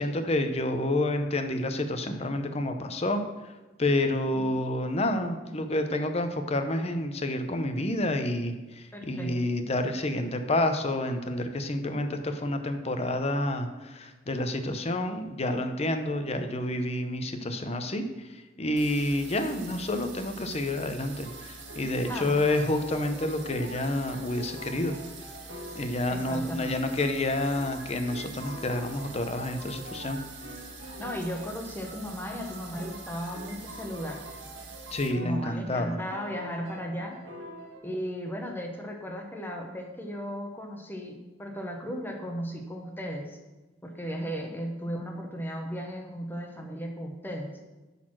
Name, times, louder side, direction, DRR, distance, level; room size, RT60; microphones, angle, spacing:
voice 1, 0.0-3.5 3.8-25.0 25.7-30.2 34.9-36.0, left 1 dB, 35° left, 7 dB, 0.8 m, -29 dB
voice 2, 8.9-9.3 22.1-22.4 26.1-26.8 31.0-34.2 35.2-37.2 37.8-43.4 43.8-47.5, equal, 10° left, 2 dB, 1.1 m, -36 dB
sound 1, 18.8-35.1, right 4 dB, 85° right, 1.6 m, -45 dB
sound 2, 21.2-25.9 26.2-31.6 31.8-37.8, equal, 70° right, 2.0 m, -45 dB
10.5 x 4.2 x 6.2 m, 1.2 s
head